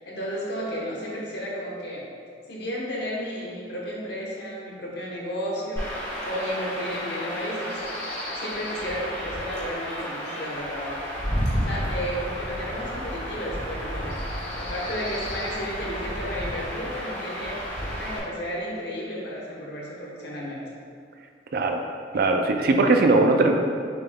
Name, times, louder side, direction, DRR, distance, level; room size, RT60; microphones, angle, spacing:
voice 1, 0.0-2.1 2.5-7.8 8.3-11.0 11.7-20.6, equal, 60° left, -4 dB, 1.0 m, -33 dB
Chirp tweet / Wind / Stream, 5.8-18.2, equal, 20° left, 1.2 m, -32 dB
voice 2, 21.5-21.8 22.1-23.5, right 3 dB, 50° right, 4 dB, 0.4 m, -20 dB
6.6 x 3.6 x 2.2 m, 2.2 s
head